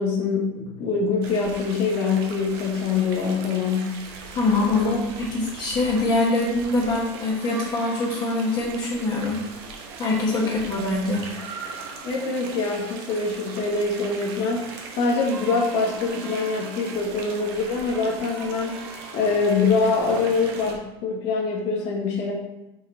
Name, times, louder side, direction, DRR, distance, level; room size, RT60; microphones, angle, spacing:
voice 1, 0.0-4.0 4.7-5.0 10.4-10.5 12.0-14.6 14.9-18.8 19.1-22.3, left 4 dB, 50° left, -1 dB, 1.7 m, -24 dB
sound 1, 1.2-20.8, right 4 dB, 75° right, 1.1 m, -39 dB
voice 2, 4.3-4.9 5.3-9.4 10.0-11.3, left 2 dB, 35° left, -3 dB, 1.2 m, -23 dB
5.6 x 4.1 x 4.1 m, 0.93 s
supercardioid pair, 145°, 13 cm